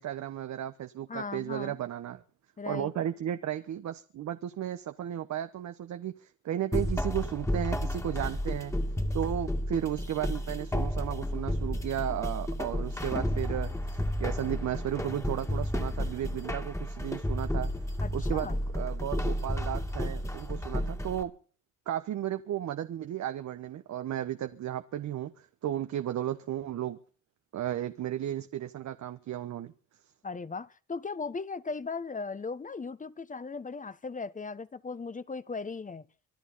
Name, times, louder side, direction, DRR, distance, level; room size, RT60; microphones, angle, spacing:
voice 1, 0.0-2.2 2.7-8.7 9.1-17.7 18.1-21.3 21.9-27.0 27.5-29.7, right 11 dB, 65° right, 1.2 m, -34 dB
voice 2, 1.1-1.8 2.6-2.9 18.0-18.6 30.2-36.0, left 4 dB, 25° left, 1.2 m, -37 dB
sound 1, 6.7-21.2, left 1 dB, 10° left, 2.3 m, -32 dB
25.0 x 12.5 x 4.2 m
cardioid pair, 90°, 30 cm